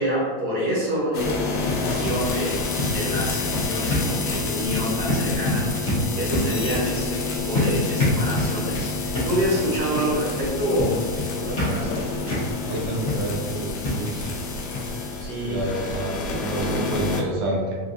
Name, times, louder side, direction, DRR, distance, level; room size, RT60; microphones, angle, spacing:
voice 1, 0.0-11.1 11.3-12.5 15.1-15.6, equal, 60° right, -8 dB, 2.0 m, -28 dB
sound 1, 1.1-17.2, left 4 dB, 90° left, 1.5 m, -29 dB
sound 2, 1.2-14.5 14.7-14.9 15.3-15.4 15.7-15.8, left 1 dB, 50° left, 0.8 m, -28 dB
voice 2, 12.7-14.2 15.5-17.7, right 1 dB, 80° right, -2 dB, 1.9 m, -28 dB
4.9 x 2.7 x 2.5 m, 1.5 s
omnidirectional pair, 3.6 m